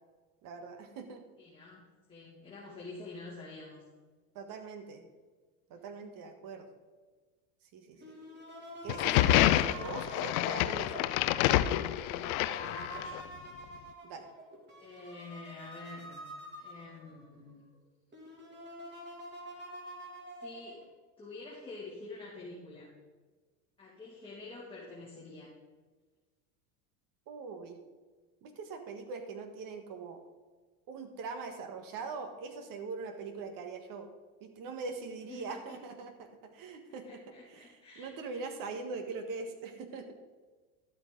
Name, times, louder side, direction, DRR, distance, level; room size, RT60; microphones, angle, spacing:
voice 1, 0.4-1.2 4.3-5.1 5.7-6.7 7.7-8.1 8.8-11.1 14.0-14.2 27.3-27.8 28.4-30.2 30.9-34.1 34.4-37.2 37.5-40.1, right 4 dB, 50° right, 7 dB, 1.6 m, -42 dB
voice 2, 1.4-3.8 7.9-8.1 12.4-13.3 14.8-16.2 16.6-17.6 20.4-20.8 21.2-22.9 23.8-25.5 35.3-35.8 37.0-38.5, left 3 dB, 10° left, -7 dB, 2.4 m, -48 dB
sound 1, 8.0-17.3 17.8-17.9 18.1-20.9, right 1 dB, 25° right, 2.8 m, -47 dB
sound 2, 8.9-13.2, left 14 dB, 70° left, 0.6 m, -28 dB
12.0 x 8.2 x 3.9 m, 1.4 s
supercardioid pair, 120°, 44 cm